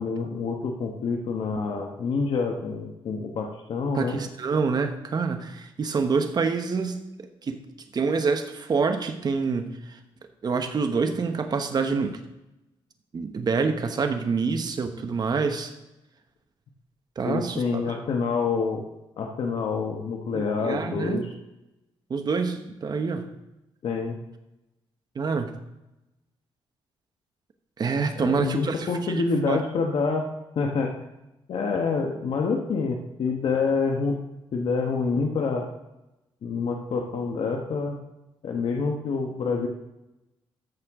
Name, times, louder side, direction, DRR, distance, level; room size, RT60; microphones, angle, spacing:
voice 1, 0.0-4.2 17.2-18.8 19.2-21.3 23.8-24.2 28.2-30.2 30.6-31.0 31.5-34.2 34.5-35.7 36.4-38.0 38.4-39.7, left 4 dB, 65° left, 1 dB, 1.1 m, -27 dB
voice 2, 3.9-7.6 7.9-10.0 10.4-12.2 13.1-15.7 17.2-18.0 20.3-21.2 22.1-23.3 25.1-25.5 27.8-29.6, right 4 dB, 45° right, 6 dB, 1.1 m, -27 dB
13.5 x 6.5 x 3.7 m, 0.94 s
cardioid pair, 105°, 10 cm